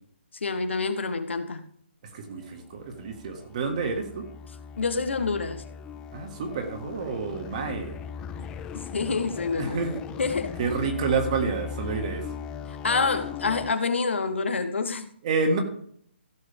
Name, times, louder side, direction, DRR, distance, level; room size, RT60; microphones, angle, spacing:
voice 1, 0.4-1.7 4.8-5.6 8.7-9.8 10.2-10.6 12.7-15.1, left 4 dB, 80° left, 1.3 m, -27 dB
voice 2, 2.0-4.3 6.1-8.0 9.6-10.0 10.6-12.3 15.2-15.6, right 4 dB, 35° right, 1.8 m, -29 dB
sound 1, 2.3-13.8, left 7 dB, 10° left, 0.4 m, -39 dB
15.5 x 6.3 x 3.6 m
hypercardioid pair, 160°, 6 cm